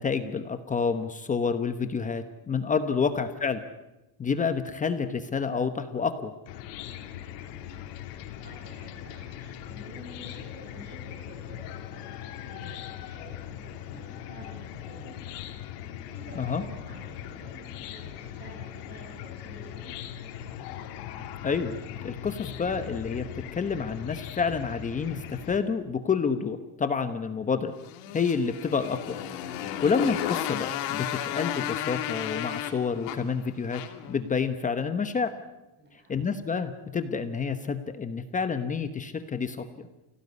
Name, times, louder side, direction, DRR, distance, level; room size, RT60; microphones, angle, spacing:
voice 1, 0.0-3.6 4.2-6.3 16.4-16.6 21.4-21.8 22.0-27.7 28.1-29.2 29.6-33.8 34.1-35.3 36.1-39.9, left 5 dB, 15° left, 9 dB, 1.0 m, -29 dB
Chicken rooster / Cricket, 6.5-25.6, left 11 dB, 85° left, 3.1 m, -40 dB
voice 2, 7.0-15.3 16.1-19.9 35.8-36.1, right 1 dB, 20° right, -2 dB, 6.5 m, -49 dB
Motorcycle, 27.8-34.1, left 11 dB, 70° left, 3.1 m, -33 dB
28.5 x 17.0 x 9.7 m, 1.0 s
cardioid pair, 160°, 46 cm